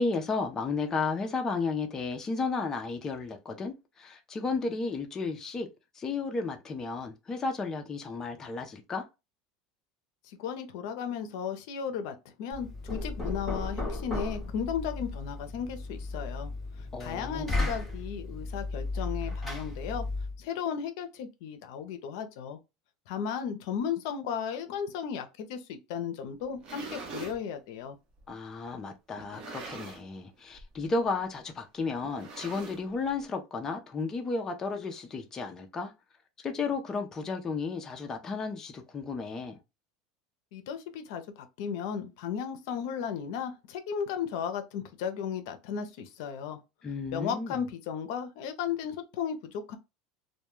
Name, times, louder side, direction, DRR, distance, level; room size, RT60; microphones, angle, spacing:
voice 1, 0.0-5.7 6.0-9.0 16.9-17.7 28.3-35.9 36.4-39.6 46.8-47.6, left 4 dB, 20° left, 0.4 m, -33 dB
voice 2, 10.3-16.5 17.0-20.1 20.4-22.6 23.1-28.0 40.5-46.6 47.1-49.8, left 7 dB, 75° left, 0.5 m, -35 dB
Knock, 12.5-20.4, left 2 dB, 5° left, 1.0 m, -35 dB
sound 1, 26.4-27.4 28.2-28.3 29.2-30.2 30.5-30.8 31.0-31.1 32.0-33.1, right 4 dB, 40° right, 0.8 m, -43 dB
2.1 x 2.1 x 3.0 m
supercardioid pair, 135°, 2 cm